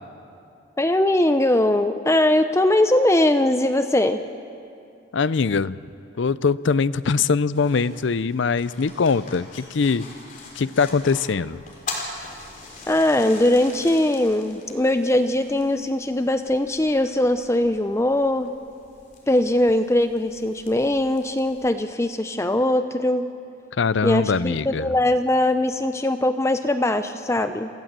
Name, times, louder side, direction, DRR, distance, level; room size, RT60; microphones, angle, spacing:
voice 1, 0.8-4.2 12.9-18.5 19.3-23.2 24.0-27.7, left 1 dB, 15° left, 9 dB, 0.5 m, -21 dB
voice 2, 5.1-5.8 6.2-10.1 10.6-11.6 23.8-24.9, left 5 dB, 60° left, 18 dB, 0.5 m, -22 dB
sound 1, 7.5-21.7, left 3 dB, 40° left, 3.8 m, -42 dB
27.5 x 15.5 x 7.5 m, 2.6 s
head